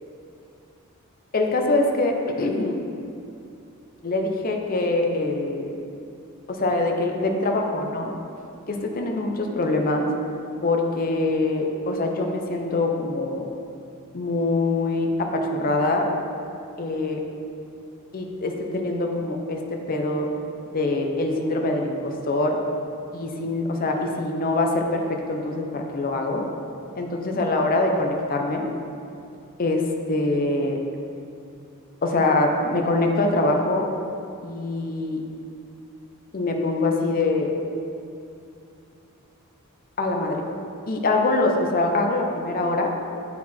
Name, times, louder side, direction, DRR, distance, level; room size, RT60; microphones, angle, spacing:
voice 1, 1.3-2.8 4.0-5.7 6.5-8.1 8.7-10.1 10.6-13.5 14.1-16.1 16.8-17.2 18.1-20.3 20.7-22.6 23.1-26.5 27.0-28.7 29.6-30.8 32.0-33.9 34.4-35.2 36.3-37.5 40.0-40.4 40.9-42.9, left 2 dB, 40° left, 2 dB, 0.6 m, -24 dB
9.2 x 4.2 x 4.3 m, 2.7 s
head